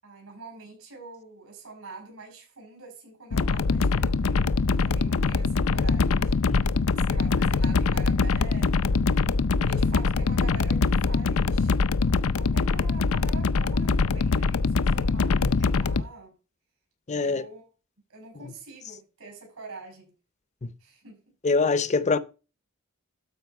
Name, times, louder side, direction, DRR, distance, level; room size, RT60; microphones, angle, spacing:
voice 1, 0.0-6.6 6.9-9.3 9.6-11.7 12.3-16.3 17.2-17.7 18.1-20.1 20.8-21.2 21.7-21.9, right 3 dB, 80° right, 6.5 m, -45 dB
sound 1, 3.3-16.0, left 4 dB, 75° left, 0.5 m, -23 dB
voice 2, 9.6-9.9 15.2-15.6 17.1-17.4 20.6-20.7 21.4-22.2, left 4 dB, 35° left, 0.6 m, -26 dB
12.5 x 5.1 x 4.7 m
head